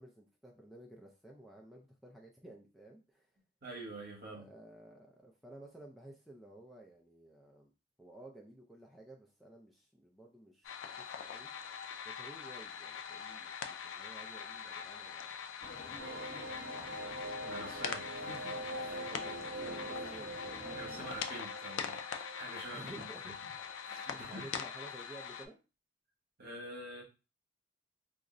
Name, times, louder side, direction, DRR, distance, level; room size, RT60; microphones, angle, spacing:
voice 1, 0.0-3.3 4.3-7.7 8.0-11.5 12.0-15.4 15.7-17.4 18.8-20.7 22.7-23.3 24.1-25.6, right 1 dB, ahead, -2 dB, 0.3 m, -54 dB
voice 2, 3.6-4.5 17.4-19.1 20.7-23.0 23.4-23.5 23.8-24.5 26.4-27.0, right 1 dB, 50° right, -1 dB, 1.0 m, -47 dB
sound 1, 10.6-25.5, left 7 dB, 80° left, 0.3 m, -43 dB
sound 2, 15.6-21.2, left 2 dB, 45° left, 0.9 m, -50 dB
sound 3, 16.0-23.4 23.7-23.8 24.1-24.2, right 1 dB, 80° right, 0.4 m, -44 dB
2.4 x 2.0 x 3.6 m, 0.31 s
head